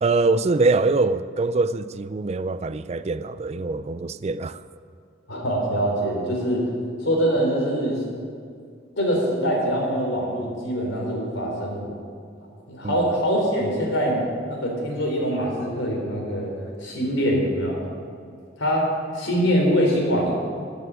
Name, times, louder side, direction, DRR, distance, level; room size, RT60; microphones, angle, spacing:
voice 1, 0.0-4.6 12.8-13.1, right 3 dB, 35° right, 0.4 m, -23 dB
voice 2, 5.3-6.7 7.0-8.0 9.0-12.0 12.7-16.5 16.8-17.8 18.6-20.3, equal, 85° left, 3.7 m, -24 dB
12.5 x 7.0 x 9.9 m
head